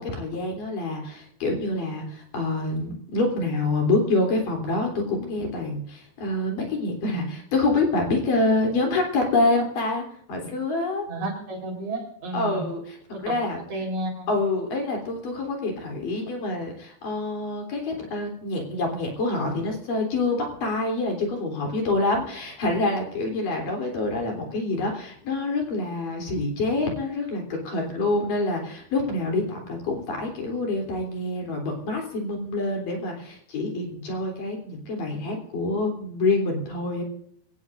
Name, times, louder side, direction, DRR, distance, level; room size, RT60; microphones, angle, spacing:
voice 1, 0.0-11.1 12.3-12.8 13.2-13.6 14.3-37.0, left 2 dB, 55° left, 2 dB, 4.8 m, -26 dB
voice 2, 11.1-12.6 13.1-13.3 13.7-14.3, right 2 dB, 55° right, 1 dB, 5.7 m, -32 dB
23.0 x 18.0 x 2.6 m, 0.66 s
omnidirectional pair, 4.7 m